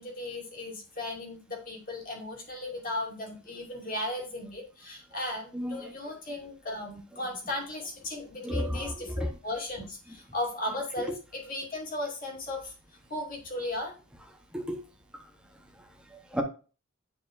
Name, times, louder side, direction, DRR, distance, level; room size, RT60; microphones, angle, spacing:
voice 1, 0.0-12.7 13.1-13.9, left 1 dB, 40° left, 2.5 m, -36 dB
voice 2, 5.5-5.9 8.4-9.3 14.5-14.8 15.1-15.2 15.7-16.4, equal, 5° right, 1.1 m, -33 dB
9.8 x 4.7 x 2.7 m
head